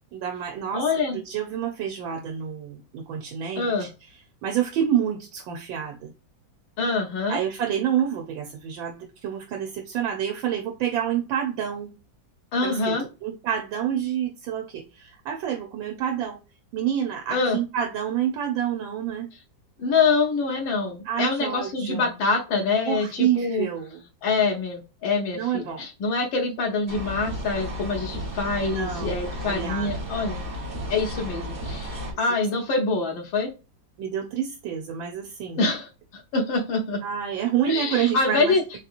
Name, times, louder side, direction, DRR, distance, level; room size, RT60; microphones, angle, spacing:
voice 1, 0.1-0.8 1.1-3.9 4.4-6.1 7.3-11.9 12.6-13.0 13.2-16.4 16.7-19.3 21.0-22.2 22.8-24.0 25.4-25.8 28.6-29.2 29.5-30.2 34.0-35.6 37.0-38.5, right 9 dB, 80° right, 1.4 m, -28 dB
voice 2, 0.7-1.2 3.6-3.9 6.8-7.4 12.5-13.0 17.3-17.6 19.8-23.7 24.2-30.4 30.9-33.5 35.6-37.0 37.7-38.6, left 4 dB, 80° left, 1.7 m, -25 dB
sound 1, 26.9-32.1, equal, 40° right, 0.9 m, -33 dB
4.2 x 2.8 x 2.4 m
omnidirectional pair, 2.1 m